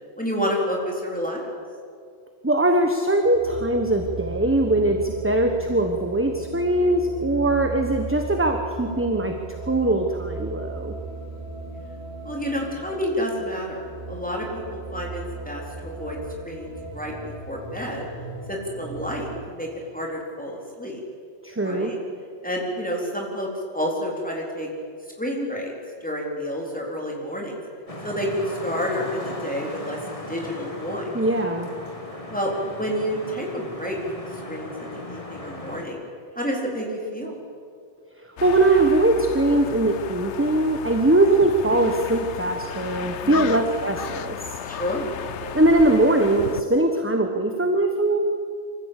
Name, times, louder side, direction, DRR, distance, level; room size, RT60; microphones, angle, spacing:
voice 1, 0.2-1.5 12.2-13.8 14.1-16.2 16.4-17.1 17.5-18.1 18.5-19.7 19.9-21.0 21.6-22.0 22.4-23.5 23.7-24.7 25.2-25.7 26.0-27.6 28.0-30.0 30.3-31.1 32.3-36.0 36.4-37.4 43.2-43.6 44.6-45.1, equal, 5° left, -1 dB, 4.0 m, -29 dB
voice 2, 2.4-9.3 9.6-10.9 21.4-21.9 31.1-31.7 38.4-44.4 45.5-48.2, right 2 dB, 10° right, 4 dB, 1.2 m, -21 dB
sound 1, 3.2-19.4, right 3 dB, 60° right, 5.8 m, -36 dB
sound 2, 27.9-35.9, left 1 dB, 30° left, 2.1 m, -37 dB
sound 3, 38.4-46.6, left 8 dB, 80° left, 1.1 m, -34 dB
25.0 x 14.5 x 8.4 m, 2.2 s
omnidirectional pair, 1.2 m